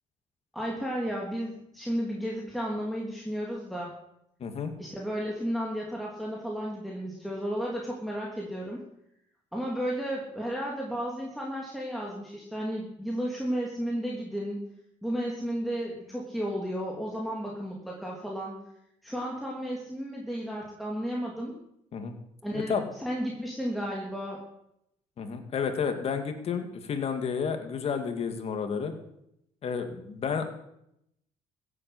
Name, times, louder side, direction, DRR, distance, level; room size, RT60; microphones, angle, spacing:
voice 1, 0.5-3.9 4.8-8.8 9.5-14.6 15.0-18.6 19.0-21.6 22.4-24.4, equal, ahead, -3 dB, 3.1 m, -33 dB
voice 2, 4.4-4.7 21.9-22.1 22.5-22.9 25.2-29.0 29.6-30.4, left 6 dB, 50° left, 6 dB, 2.5 m, -31 dB
15.5 x 8.3 x 8.0 m, 0.79 s
cardioid pair, 105°, 14 cm